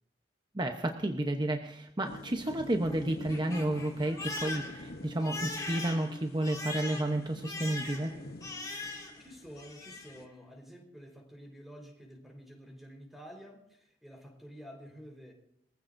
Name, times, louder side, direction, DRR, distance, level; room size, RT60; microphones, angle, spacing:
voice 1, 0.5-8.1, right 1 dB, 25° right, 4 dB, 0.9 m, -31 dB
sound 1, 2.0-10.3, left 1 dB, 55° left, 0.9 m, -49 dB
Crying sobbing, 2.3-9.3 9.6-10.2, left 2 dB, 20° left, 2.4 m, -41 dB
voice 2, 9.2-15.3, equal, ahead, 1 dB, 4.2 m, -50 dB
23.5 x 15.5 x 2.6 m, 0.74 s
head